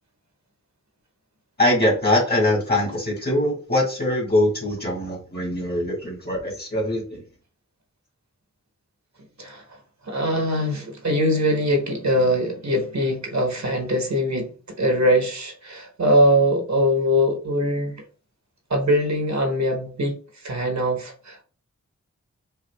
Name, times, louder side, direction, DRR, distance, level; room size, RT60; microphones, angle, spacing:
voice 1, 1.6-7.2, left 1 dB, 30° left, 1.8 m, -22 dB
voice 2, 10.0-14.5 14.8-18.0 18.7-20.2 20.4-21.4, equal, 60° right, 1.1 m, -22 dB
5.5 x 2.4 x 2.2 m
wide cardioid pair, 95°, 31 cm